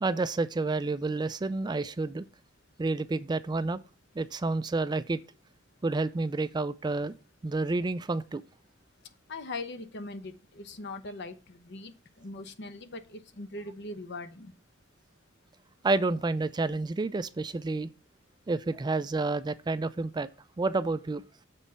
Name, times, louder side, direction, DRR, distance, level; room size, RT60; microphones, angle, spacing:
voice 1, 0.0-2.3 2.8-3.8 4.2-5.2 5.8-7.1 7.4-8.4 15.8-17.9 18.5-20.3 20.6-21.2, right 3 dB, 20° right, 0.3 m, -29 dB
voice 2, 9.3-11.9 12.2-14.5, left 2 dB, 60° left, 0.9 m, -40 dB
7.2 x 4.2 x 5.3 m
head